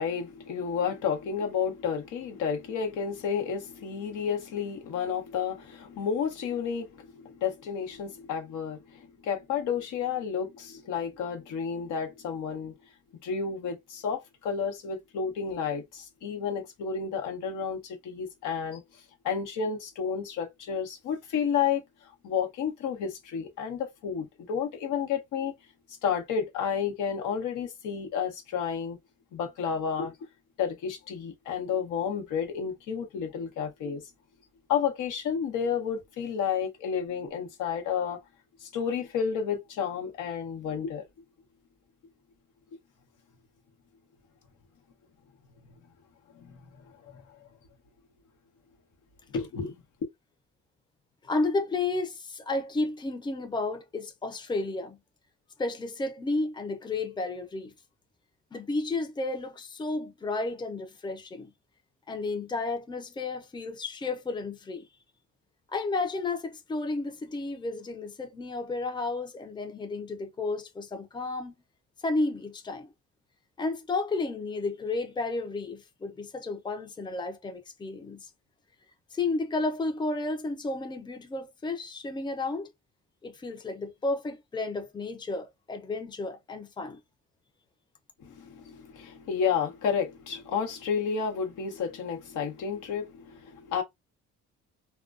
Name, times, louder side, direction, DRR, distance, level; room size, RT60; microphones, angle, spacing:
voice 1, 0.0-12.8 13.2-18.8 19.2-25.5 26.0-29.0 29.3-30.2 30.6-34.0 34.7-38.2 38.6-41.0 46.3-46.6 47.0-47.2 49.3-49.7 88.2-93.8, left 7 dB, 85° left, 0.9 m, -31 dB
voice 2, 51.2-55.0 55.6-57.7 58.5-61.5 62.1-64.9 65.7-71.5 72.0-72.9 73.6-78.3 79.1-82.7 83.2-87.0, left 3 dB, 15° left, 0.5 m, -32 dB
2.3 x 2.2 x 2.4 m
cardioid pair, 90°, 30 cm